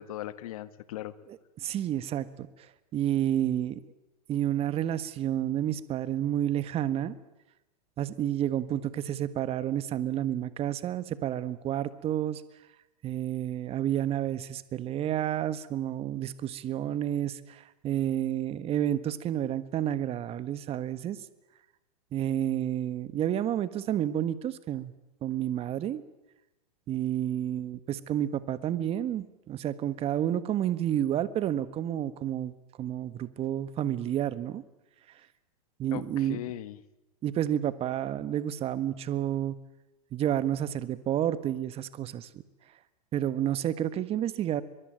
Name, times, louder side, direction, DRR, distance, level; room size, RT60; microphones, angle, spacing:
voice 1, 0.0-1.1 35.9-36.8, left 13 dB, 65° left, 14 dB, 1.7 m, -38 dB
voice 2, 1.3-2.5 2.9-3.8 4.3-7.1 8.0-12.4 13.0-21.2 22.1-24.9 25.2-26.0 26.9-32.5 32.8-34.6 35.8-36.4 37.2-39.5 40.1-42.4 43.1-44.6, right 11 dB, 30° right, 14 dB, 1.5 m, -30 dB
23.0 x 23.0 x 9.1 m, 0.98 s
hypercardioid pair, 120°, 20 cm